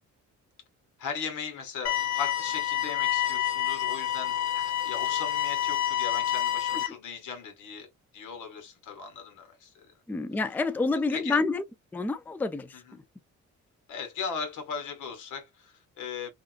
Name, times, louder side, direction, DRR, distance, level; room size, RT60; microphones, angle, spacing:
voice 1, 1.0-9.9 11.1-11.4 12.7-13.0 13.9-16.3, left 6 dB, 80° left, 1.3 m, -38 dB
sound 1, 1.9-6.9, left 12 dB, 60° left, 0.7 m, -28 dB
voice 2, 10.1-11.6 11.9-13.0, left 3 dB, 5° left, 0.4 m, -28 dB
3.6 x 2.4 x 2.4 m
cardioid pair, 90°, 30 cm